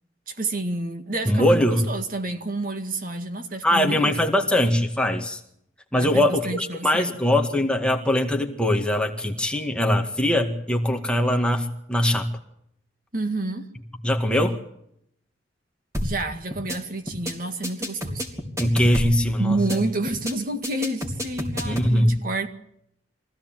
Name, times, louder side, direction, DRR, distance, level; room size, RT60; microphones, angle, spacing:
voice 1, 0.3-1.6 1.9-4.1 5.9-7.1 13.1-13.7 16.0-18.2 19.4-22.5, right 2 dB, 50° right, 2.0 m, -29 dB
voice 2, 1.3-1.9 3.6-5.4 5.9-12.3 14.0-14.6 18.6-19.8 21.6-22.2, left 1 dB, 5° left, 2.0 m, -22 dB
sound 1, 15.9-16.2 16.5-16.8 17.1-17.3 17.6-19.2 19.5-19.8 20.1-20.3 20.6-21.9, equal, 15° right, 3.7 m, -29 dB
23.5 x 16.0 x 9.1 m
head